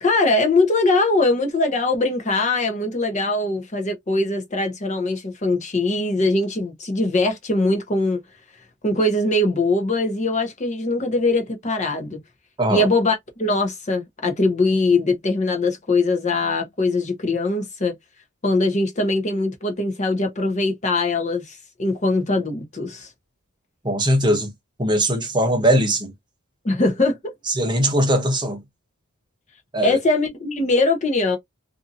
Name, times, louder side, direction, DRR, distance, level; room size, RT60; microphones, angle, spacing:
voice 1, 0.0-8.2 8.8-12.2 12.7-18.0 18.4-23.1 26.6-27.3 29.8-31.4, left 2 dB, 35° left, 0.7 m, -21 dB
voice 2, 23.8-24.5 24.8-26.1 27.5-28.6 29.7-30.0, right 1 dB, 20° right, 0.8 m, -20 dB
2.6 x 2.6 x 2.5 m
head